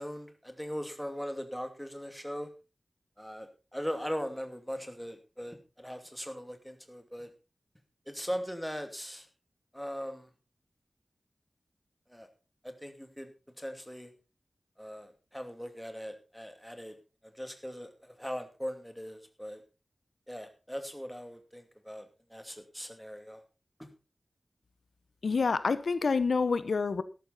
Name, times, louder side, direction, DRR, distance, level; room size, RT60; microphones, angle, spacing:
voice 1, 0.0-2.5 3.2-7.3 8.1-9.3 9.7-10.3 12.1-12.3 12.6-13.3 13.6-14.1 14.8-17.0 17.2-19.6 20.3-23.4 23.8-23.9, equal, ahead, 7 dB, 2.4 m, -40 dB
voice 2, 25.2-27.0, left 4 dB, 85° left, 14 dB, 0.8 m, -27 dB
13.0 x 12.5 x 4.0 m, 0.30 s
wide cardioid pair, 90°, 0 cm